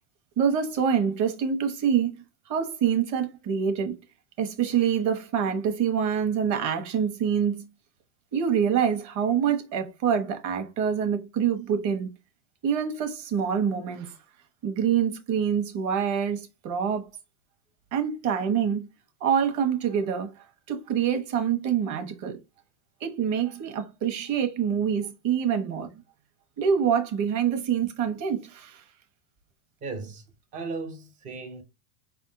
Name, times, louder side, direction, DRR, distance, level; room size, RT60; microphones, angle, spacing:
voice 1, 0.4-2.2 2.5-4.0 4.4-7.7 8.3-12.1 12.6-14.1 14.6-17.1 17.9-18.9 19.2-20.3 20.7-22.4 23.0-25.9 26.6-28.8, right 7 dB, 35° right, 1.1 m, -26 dB
voice 2, 29.8-30.3 30.5-31.6, right 3 dB, 20° right, 0.3 m, -36 dB
5.1 x 3.5 x 2.6 m
supercardioid pair, 140°, 49 cm